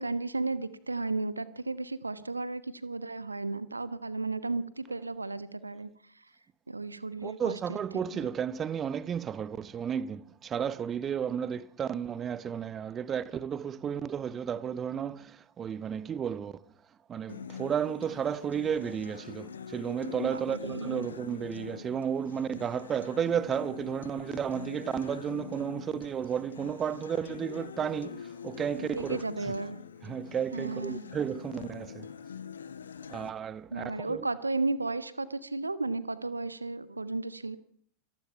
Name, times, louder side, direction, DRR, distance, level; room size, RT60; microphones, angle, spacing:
voice 1, 0.0-5.9 6.7-8.3 20.2-21.1 28.8-29.8 30.5-31.0 33.7-37.6, right 3 dB, 80° right, 1.2 m, -34 dB
voice 2, 7.2-16.6 17.1-29.6 30.0-32.1 33.1-34.3, right 8 dB, 25° right, 1.1 m, -33 dB
Acoustic guitar, 17.3-33.3, left 7 dB, 70° left, 1.1 m, -44 dB
25.5 x 19.0 x 5.7 m
figure-of-eight pair, 90°, 0 cm